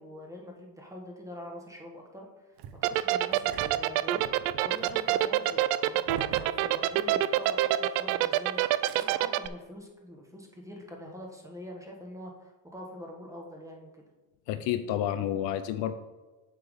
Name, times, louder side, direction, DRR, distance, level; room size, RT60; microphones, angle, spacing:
voice 1, 0.0-2.5 2.9-4.3 4.6-14.0, equal, 5° right, 0 dB, 1.2 m, -44 dB
Engine starting, 2.6-7.5 7.7-7.8 8.6-9.1, right 8 dB, 50° right, 0.8 m, -45 dB
sound 1, 2.8-9.5, right 15 dB, 90° right, 0.5 m, -25 dB
voice 2, 14.5-15.9, left 11 dB, 60° left, 11 dB, 0.6 m, -30 dB
7.8 x 6.8 x 3.5 m, 1.2 s
cardioid pair, 140°, 49 cm